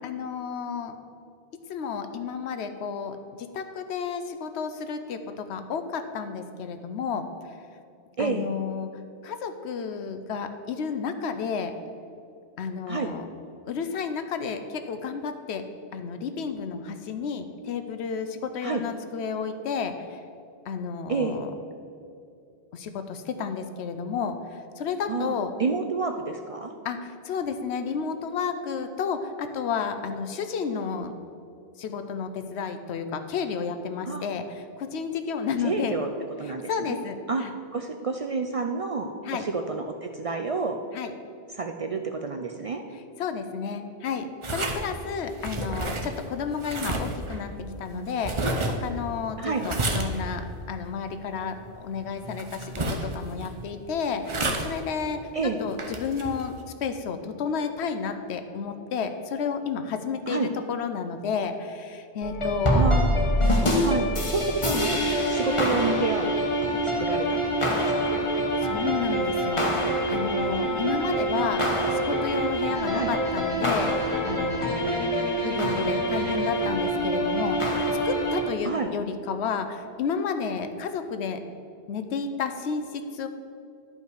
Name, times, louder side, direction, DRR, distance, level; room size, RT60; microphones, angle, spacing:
voice 1, 0.0-0.9 1.7-7.3 8.2-8.9 9.2-11.7 12.6-13.2 13.7-15.6 15.9-20.2 20.7-21.5 22.7-24.4 24.8-25.5 26.8-31.1 31.8-36.0 36.7-37.5 39.3-39.5 40.9-41.1 43.2-47.5 47.8-48.5 48.8-55.2 55.6-56.5 56.8-62.8 68.3-69.6 70.1-71.6 71.9-77.7 78.0-81.4 81.9-83.3, left 6 dB, 80° left, 8 dB, 0.9 m, -31 dB
voice 2, 8.2-8.5 12.9-13.1 18.6-18.8 21.1-21.4 25.1-26.7 34.0-34.2 35.6-36.1 36.4-37.0 37.3-37.5 37.7-40.8 41.5-42.8 49.4-49.7 55.3-55.6 60.3-60.5 62.7-63.2 63.8-66.4 66.8-68.3 72.9-73.1 78.6-78.9, right 4 dB, 60° right, 5 dB, 0.3 m, -29 dB
sound 1, 44.4-56.6, right 2 dB, 30° right, 0.7 m, -32 dB
sound 2, 62.2-78.4, equal, 30° left, 1.0 m, -25 dB
11.0 x 5.4 x 4.7 m, 2.6 s
omnidirectional pair, 1.1 m